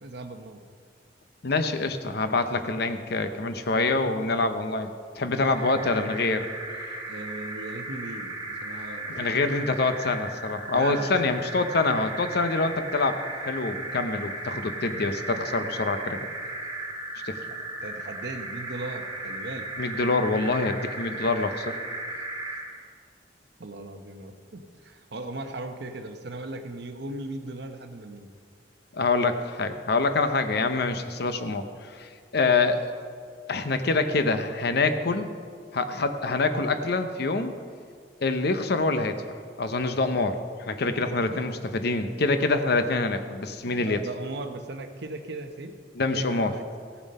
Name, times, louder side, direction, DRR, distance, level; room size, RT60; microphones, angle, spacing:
voice 1, 0.0-0.6 5.3-5.5 7.1-9.3 10.7-11.3 17.5-19.7 22.1-22.3 23.6-28.3 41.2-41.4 43.6-45.7 46.1-46.6, right 2 dB, 65° right, 7 dB, 0.9 m, -38 dB
voice 2, 1.4-4.9 5.1-6.5 9.1-13.2 13.4-16.2 17.2-17.4 19.8-21.8 28.9-32.8 33.5-35.3 35.7-37.6 38.2-39.2 39.6-44.0 46.0-46.5, left 3 dB, 60° left, 9 dB, 0.8 m, -26 dB
sound 1, 5.4-22.8, right 2 dB, 20° right, 2.0 m, -36 dB
16.0 x 7.1 x 5.4 m, 2.1 s
head